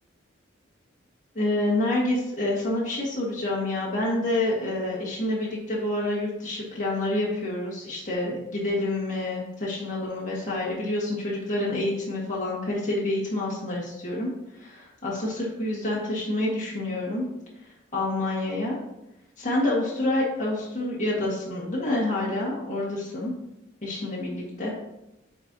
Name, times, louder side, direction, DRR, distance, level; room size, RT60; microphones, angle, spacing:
voice 1, 1.4-14.3 14.6-17.3 17.9-18.8 19.4-23.3 23.8-24.7, left 1 dB, 40° left, -5 dB, 1.7 m, -28 dB
9.2 x 4.5 x 2.8 m, 0.88 s
head